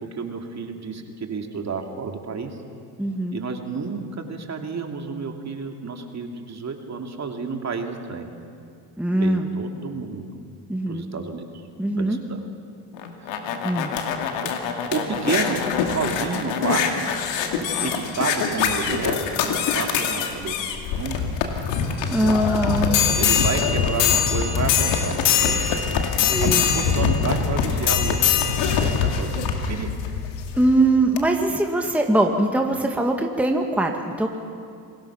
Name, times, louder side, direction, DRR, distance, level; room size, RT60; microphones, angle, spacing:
voice 1, 0.1-2.6 3.3-8.3 9.2-10.3 10.9-11.4 12.0-12.4 13.2-13.4 14.4-14.5 14.9-15.6 15.9-17.0 17.6-20.6 21.0-21.3 23.1-25.2 25.4-25.7 25.9-28.2 28.7-29.9, right 5 dB, 35° right, 3 dB, 2.6 m, -30 dB
voice 2, 3.0-3.4 9.0-9.5 10.7-11.1 11.8-12.2 13.6-13.9 22.1-23.0 26.3-26.7 30.5-34.3, right 1 dB, 5° right, 2 dB, 2.0 m, -22 dB
sound 1, 12.9-30.6 31.2-31.3, left 7 dB, 70° left, 2.4 m, -23 dB
28.0 x 20.0 x 5.9 m, 2.3 s
hypercardioid pair, 75°, 46 cm